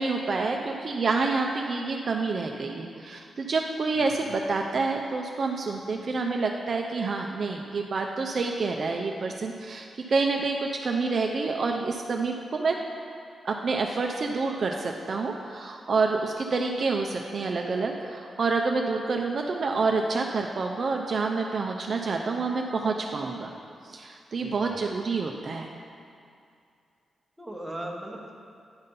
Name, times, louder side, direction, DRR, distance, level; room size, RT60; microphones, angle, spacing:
voice 1, 0.0-12.8 13.4-23.5 23.8-25.7, right 4 dB, 45° right, 2 dB, 0.4 m, -28 dB
voice 2, 24.4-24.8 27.4-28.3, right 1 dB, 5° right, -2 dB, 1.0 m, -38 dB
9.6 x 4.1 x 5.3 m, 2.4 s
wide cardioid pair, 140°, 0 cm